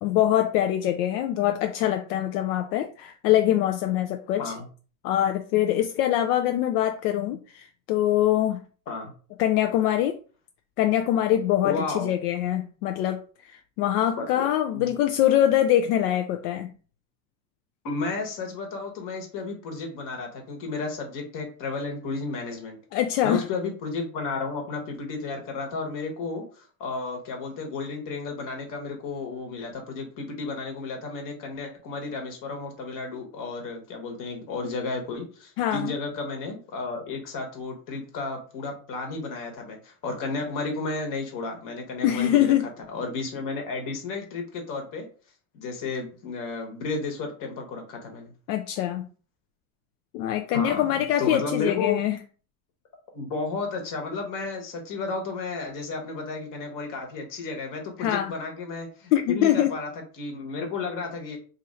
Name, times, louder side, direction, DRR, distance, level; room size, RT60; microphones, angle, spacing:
voice 1, 0.0-4.5 5.0-8.6 9.4-10.2 10.8-16.7 22.9-23.4 35.6-35.9 42.0-42.7 48.5-49.1 50.1-52.2 58.0-58.3 59.1-59.7, left 12 dB, 70° left, 0.5 m, -24 dB
voice 2, 11.6-12.1 14.2-14.5 14.7-14.9 17.8-22.8 23.2-42.5 42.9-45.1 45.5-48.3 50.5-52.0 53.1-61.4, left 3 dB, 40° left, 1.2 m, -33 dB
2.7 x 2.6 x 4.1 m
supercardioid pair, 135°, 48 cm